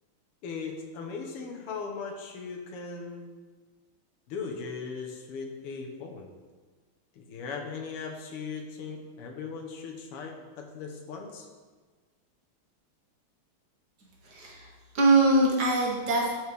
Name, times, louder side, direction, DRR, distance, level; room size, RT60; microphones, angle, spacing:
voice 1, 0.4-3.3 4.3-6.3 7.1-11.5, left 5 dB, 90° left, 2 dB, 1.9 m, -38 dB
voice 2, 14.2-16.3, right 2 dB, 50° right, -3 dB, 1.7 m, -23 dB
12.5 x 4.6 x 3.4 m, 1.4 s
omnidirectional pair, 2.4 m